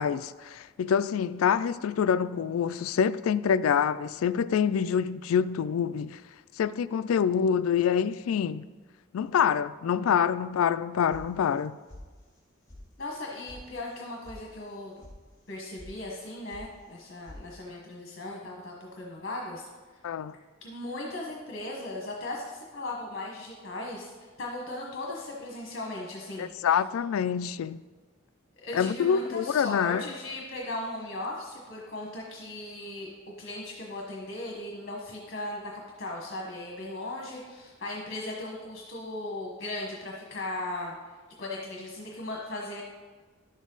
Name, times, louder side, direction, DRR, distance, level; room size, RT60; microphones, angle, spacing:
voice 1, 0.0-6.2 6.6-8.7 9.1-11.8 20.0-20.3 26.4-27.8 28.7-30.0, left 7 dB, 85° left, 0.3 m, -26 dB
sound 1, 11.1-11.6 11.9-12.4 12.7-12.8 13.1-13.6 13.9-14.4 14.7-15.1 15.5-15.9 16.2-16.7 16.9-17.4, left 1 dB, 15° left, 2.4 m, -48 dB
voice 2, 13.0-14.9 15.5-19.7 20.6-26.5 28.6-33.1 33.4-35.7 36.0-40.9 41.4-42.8, left 2 dB, 50° left, 1.3 m, -37 dB
11.0 x 7.3 x 3.9 m
head